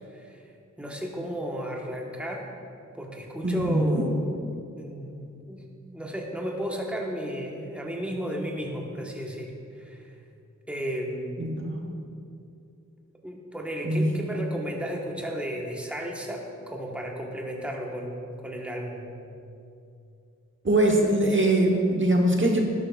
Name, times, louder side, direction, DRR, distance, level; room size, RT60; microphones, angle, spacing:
voice 1, 0.1-0.5 0.8-2.5 2.9-4.4 4.8-10.1 10.7-11.5 13.2-19.1, equal, 5° right, -1 dB, 1.2 m, -34 dB
voice 2, 3.4-4.0 11.4-11.9 13.8-14.1 20.6-22.6, right 1 dB, 40° right, 1 dB, 1.1 m, -22 dB
12.0 x 11.0 x 2.4 m, 2.5 s
wide cardioid pair, 65°, 31 cm